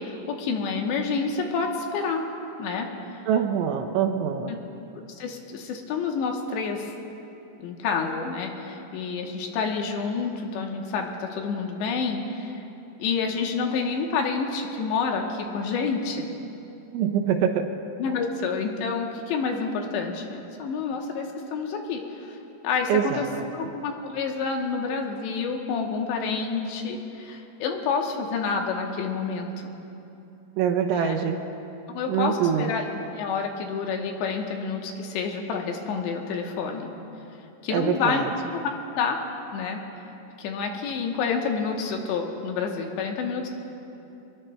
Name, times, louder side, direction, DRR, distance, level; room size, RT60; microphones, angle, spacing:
voice 1, 0.0-2.2 2.6-2.9 4.5-4.6 5.2-6.9 7.6-12.6 13.0-16.3 18.0-22.4 22.6-23.3 23.5-29.7 30.9-31.2 31.9-32.8 33.2-36.9 37.6-38.7 39.0-39.2 39.5-39.8 40.4-43.5, left 5 dB, 75° left, 2 dB, 3.0 m, -28 dB
voice 2, 3.3-4.5 16.9-17.7 22.9-23.4 30.6-31.4 32.1-32.7 37.7-38.3, right 8 dB, 80° right, 5 dB, 3.0 m, -24 dB
23.0 x 21.5 x 2.2 m, 2.9 s
omnidirectional pair, 5.6 m